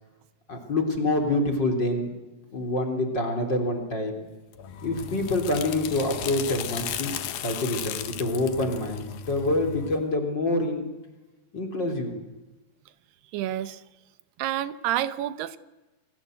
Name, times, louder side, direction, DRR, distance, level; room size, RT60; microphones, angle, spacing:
voice 1, 0.5-2.1 2.5-4.1 4.8-7.1 7.4-10.8 11.5-12.1, left 2 dB, 30° left, 4 dB, 3.9 m, -26 dB
sound 1, 4.5-10.0, left 9 dB, 70° left, 3.2 m, -35 dB
voice 2, 13.3-13.8 14.4-15.6, right 12 dB, 90° right, 14 dB, 3.2 m, -29 dB
29.0 x 22.5 x 8.0 m, 1.1 s
omnidirectional pair, 4.5 m